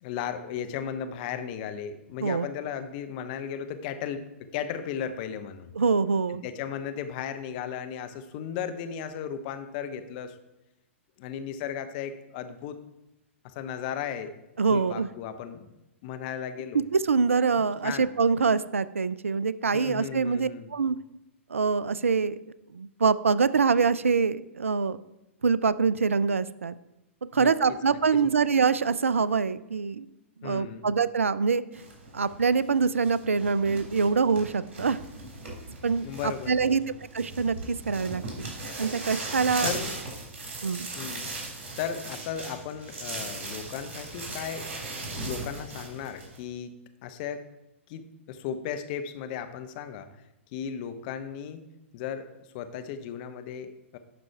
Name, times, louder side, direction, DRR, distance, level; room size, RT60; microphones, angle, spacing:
voice 1, 0.0-4.2 4.5-5.7 6.3-10.4 11.2-12.8 13.4-14.4 14.7-15.7 16.0-16.8 17.5-18.1 19.7-20.7 27.3-27.5 28.2-28.3 30.4-30.9 36.0-37.0 39.6-40.0 41.0-41.3 41.8-44.7 45.1-46.7 47.0-47.5 47.9-50.1 50.5-54.0, left 8 dB, 40° left, 9 dB, 0.8 m, -36 dB
voice 2, 5.8-6.4 14.6-15.1 16.7-21.0 21.5-22.4 22.7-25.0 25.4-26.8 27.3-30.1 30.4-31.6 32.1-35.0 35.8-36.8 37.1-38.2 38.8-39.7 40.6-40.9, right 5 dB, 80° right, 17 dB, 0.4 m, -25 dB
sound 1, 31.7-46.4, right 2 dB, 50° right, 3.3 m, -38 dB
11.0 x 4.2 x 4.6 m, 0.93 s
figure-of-eight pair, 110°, 7 cm